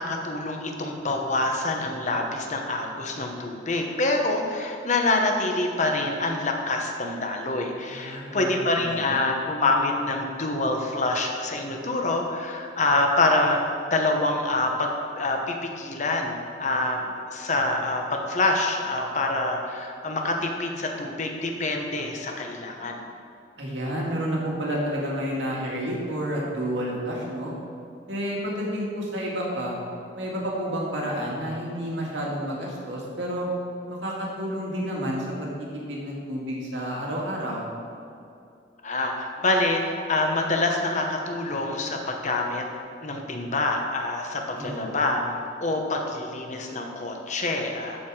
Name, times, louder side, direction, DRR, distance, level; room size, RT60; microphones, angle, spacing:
voice 1, 0.0-23.0 38.8-42.7 43.0-45.2 45.6-48.0, left 2 dB, 40° left, 2 dB, 1.0 m, -26 dB
voice 2, 7.9-8.5 8.8-9.3 23.6-27.5 28.1-29.7 30.1-33.5 33.9-37.6 44.6-45.1, equal, 80° right, -3 dB, 2.0 m, -30 dB
13.5 x 4.8 x 4.9 m, 2.6 s
head